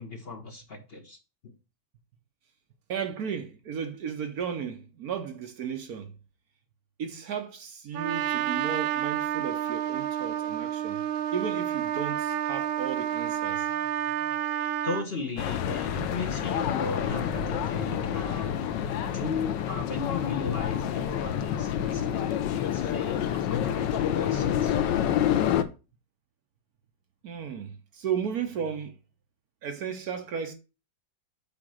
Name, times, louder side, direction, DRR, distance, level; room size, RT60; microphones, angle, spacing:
voice 1, 0.0-1.5 14.8-24.8, left 4 dB, 45° left, 0.8 m, -36 dB
voice 2, 2.9-6.1 7.0-11.0 11.3-13.7 27.2-28.9 29.6-30.5, right 7 dB, 60° right, 1.1 m, -34 dB
Trumpet, 7.9-15.1, right 11 dB, 90° right, 1.5 m, -30 dB
sound 1, 15.4-25.6, left 10 dB, 70° left, 1.3 m, -28 dB
sound 2, 17.0-20.7, right 5 dB, 25° right, 2.3 m, -45 dB
8.6 x 3.0 x 6.3 m
omnidirectional pair, 2.2 m